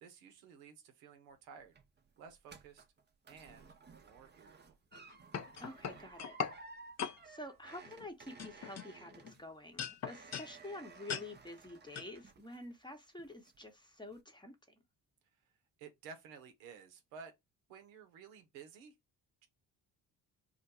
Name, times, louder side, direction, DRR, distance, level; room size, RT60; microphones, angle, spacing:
voice 1, 0.0-1.7 2.2-2.8 3.3-3.7 4.0-4.8 15.8-17.3 17.7-19.0, right 6 dB, 85° right, 0.7 m, -54 dB
sound 1, 1.3-12.9 13.2-13.7 14.1-14.2, right 4 dB, 20° right, 0.5 m, -57 dB
sound 2, 4.9-6.6 7.0-7.2 7.8-8.1 8.4-9.3 9.8-10.5 11.1-11.3 11.9-12.1, left 7 dB, 35° left, 0.5 m, -40 dB
voice 2, 5.6-6.4 7.1-14.6, left 1 dB, 10° left, 0.8 m, -49 dB
2.5 x 2.2 x 4.0 m
hypercardioid pair, 45°, 49 cm